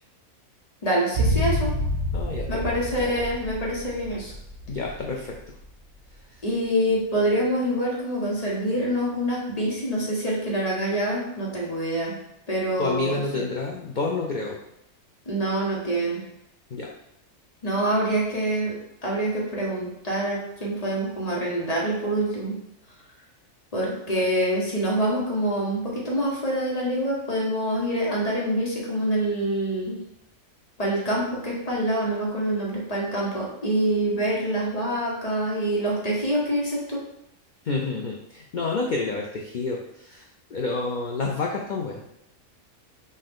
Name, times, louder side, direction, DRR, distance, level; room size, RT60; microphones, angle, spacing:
voice 1, 0.8-1.7 2.5-4.3 6.4-12.1 12.5-13.2 15.3-16.2 17.6-18.7 19.0-22.5 23.7-30.0 30.8-37.0, right 1 dB, 30° left, -4 dB, 1.2 m, -26 dB
sound 1, 1.1-5.4 5.6-5.7, equal, 55° right, 1.3 m, -28 dB
voice 2, 2.1-2.7 4.7-5.6 6.3-6.4 12.8-14.6 16.7-16.9 37.6-42.0, left 3 dB, 90° left, 0 dB, 0.4 m, -29 dB
5.5 x 2.6 x 3.6 m, 0.80 s
omnidirectional pair, 1.5 m